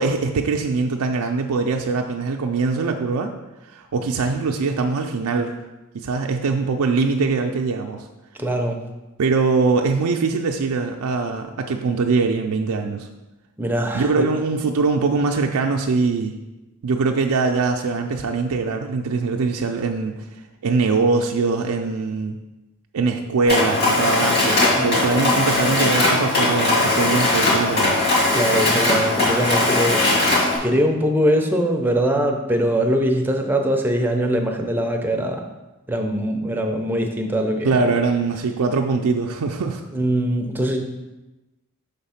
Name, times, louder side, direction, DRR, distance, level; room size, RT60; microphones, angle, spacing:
voice 1, 0.0-3.3 3.7-5.6 5.9-8.1 9.2-13.1 13.9-16.4 16.8-20.2 20.6-22.4 22.9-28.0 37.6-39.8, right 4 dB, 90° right, 3 dB, 0.4 m, -22 dB
voice 2, 8.4-8.8 13.6-14.3 24.7-25.3 28.3-30.3 30.6-35.5 35.9-37.9 39.9-40.8, right 1 dB, 10° right, 2 dB, 0.5 m, -22 dB
Mechanisms, 23.5-30.6, left 2 dB, 50° left, 1.8 m, -19 dB
5.8 x 3.5 x 5.6 m, 1.1 s
head